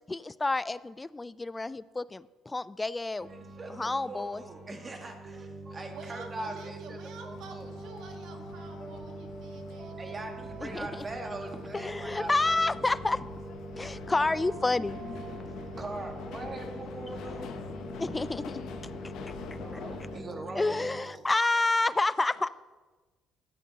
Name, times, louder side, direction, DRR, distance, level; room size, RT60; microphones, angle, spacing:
voice 1, 0.1-3.3 3.7-4.4 10.6-10.9 11.7-13.3 13.8-15.0 18.0-18.6 20.6-22.5, left 2 dB, 20° left, 18 dB, 0.3 m, -29 dB
sound 1, 3.2-21.0, right 2 dB, 50° right, 1.6 m, -43 dB
voice 2, 3.3-7.7 10.0-12.6 13.9-14.0 15.8-17.5 19.6-21.3, right 2 dB, 30° right, 3 dB, 1.7 m, -42 dB
voice 3, 5.9-10.3 15.5-15.7 18.2-18.7 21.4-22.5, right 5 dB, 75° right, 5 dB, 1.4 m, -50 dB
sound 2, 7.3-20.2, left 6 dB, 70° left, 0.8 m, -45 dB
13.5 x 9.2 x 2.9 m, 1.2 s
supercardioid pair, 85°, 0 cm